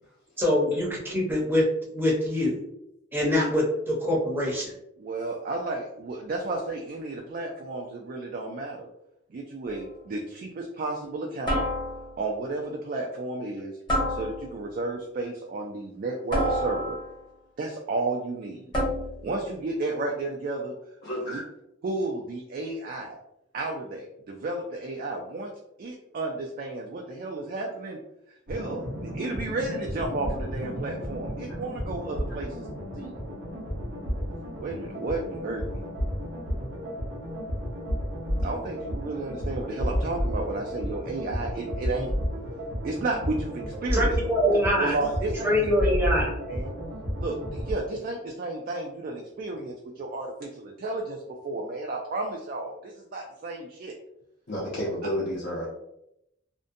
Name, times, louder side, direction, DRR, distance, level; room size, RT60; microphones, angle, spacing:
voice 1, 0.4-1.7 1.9-2.6 3.1-4.7 43.9-45.0 45.4-46.3, left 1 dB, 10° right, -3 dB, 0.6 m, -24 dB
voice 2, 5.0-8.9 9.3-11.6 12.2-13.8 14.1-17.0 17.6-18.7 19.2-20.7 21.2-21.4 21.8-23.2 23.5-25.5 25.8-28.0 28.5-32.7 32.9-33.1 34.6-35.8 38.4-42.1 42.8-44.1 44.5-45.5 46.5-46.7 47.2-54.0, right 2 dB, 45° right, 1 dB, 0.3 m, -32 dB
sound 1, 9.7-10.0 11.5-12.2 13.9-14.7 16.3-17.2 18.7-19.3, equal, 25° left, 0.9 m, -28 dB
voice 3, 21.0-21.4 31.5-31.6 32.3-32.4 54.5-55.7, equal, 50° left, -6 dB, 0.6 m, -31 dB
sound 2, 28.5-47.7, equal, 90° right, 0.7 m, -32 dB
2.5 x 2.1 x 2.5 m, 0.81 s
head